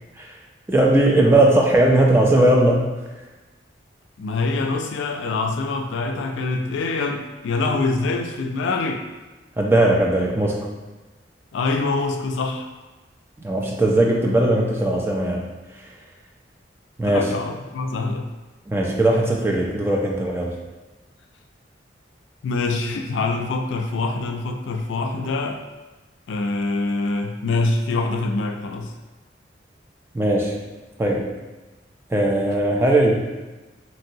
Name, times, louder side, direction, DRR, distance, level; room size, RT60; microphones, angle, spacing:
voice 1, 0.7-2.9 9.6-10.7 13.4-15.5 17.0-17.3 18.7-20.5 30.1-30.6 31.0-31.3 32.1-33.2, right 1 dB, 15° right, -1 dB, 0.3 m, -18 dB
voice 2, 4.2-9.0 11.5-12.7 17.0-18.3 22.4-25.6 26.3-28.9, left 3 dB, 80° left, 4 dB, 0.3 m, -25 dB
3.0 x 2.7 x 2.6 m, 1.2 s
head